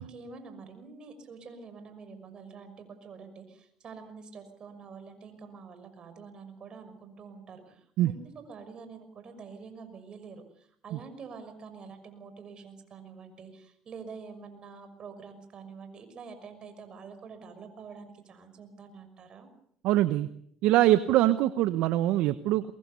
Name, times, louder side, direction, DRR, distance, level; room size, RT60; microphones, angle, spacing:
voice 1, 0.0-19.5, right 5 dB, 45° right, 8 dB, 6.0 m, -47 dB
voice 2, 19.8-20.3 20.6-22.7, right 14 dB, 75° right, 13 dB, 0.9 m, -23 dB
23.0 x 22.5 x 6.9 m, 0.67 s
supercardioid pair, 70°, 2 cm